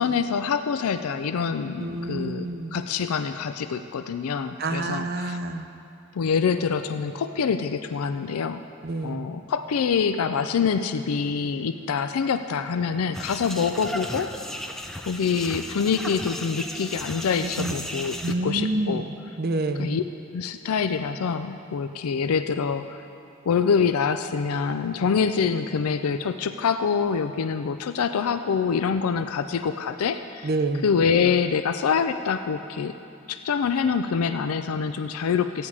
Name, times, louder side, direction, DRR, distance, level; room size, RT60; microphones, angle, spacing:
voice 1, 0.0-5.4 6.1-8.6 9.0-14.6 15.0-19.1 19.8-20.0 20.3-23.0 23.5-30.5 30.8-33.0 33.3-35.7, left 6 dB, 85° left, 9 dB, 0.4 m, -25 dB
voice 2, 1.8-2.8 4.6-5.7 8.8-9.3 17.4-17.7 18.2-19.0 19.4-20.0 30.4-30.9, right 2 dB, 45° right, 8 dB, 0.6 m, -28 dB
sound 1, 13.1-18.3, equal, ahead, 0.4 m, -35 dB
15.0 x 9.6 x 4.9 m, 2.7 s
head